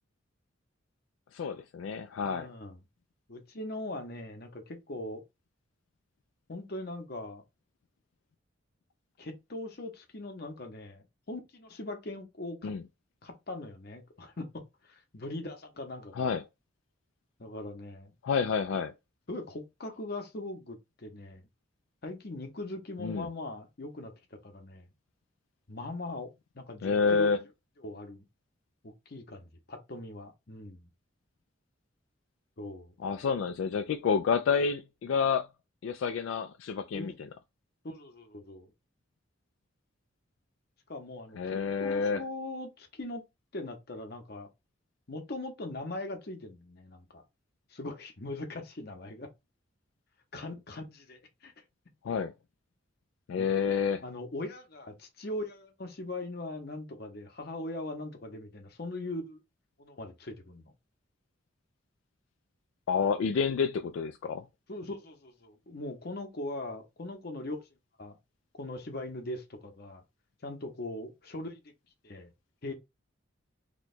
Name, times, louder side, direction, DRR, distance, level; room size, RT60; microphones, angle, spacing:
voice 1, 1.3-2.5 12.6-12.8 16.2-16.4 18.2-18.9 23.0-23.3 26.8-27.4 33.0-35.5 35.8-37.1 41.4-42.2 52.0-52.3 53.3-54.0 62.9-64.4, left 6 dB, 75° left, 0.3 m, -29 dB
voice 2, 2.2-2.8 3.3-5.2 6.5-7.4 9.2-12.8 13.2-16.4 17.4-18.1 19.3-21.4 22.0-24.9 25.7-27.3 27.8-28.3 28.8-30.9 32.6-32.9 36.9-37.2 37.8-38.7 40.9-43.2 43.5-44.5 45.1-47.2 47.7-49.3 50.3-51.5 53.4-53.5 54.0-59.4 59.8-60.7 64.7-67.6 68.0-68.2 68.6-70.0 70.4-71.7 72.0-72.3 72.6-72.7, left 2 dB, 50° left, 0.8 m, -40 dB
3.0 x 2.3 x 4.1 m
head